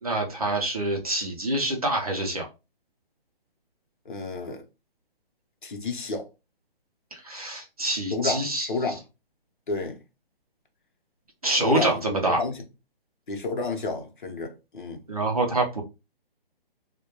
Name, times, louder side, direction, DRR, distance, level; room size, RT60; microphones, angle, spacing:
voice 1, 0.0-2.5 7.1-8.7 11.4-12.4 15.1-15.8, right 2 dB, 40° right, 0.5 m, -26 dB
voice 2, 4.0-4.6 5.6-6.3 8.1-9.0 9.7-10.0 11.6-12.6 13.3-15.0, left 3 dB, 55° left, 0.7 m, -31 dB
2.2 x 2.1 x 2.9 m
hypercardioid pair, 175°, 30 cm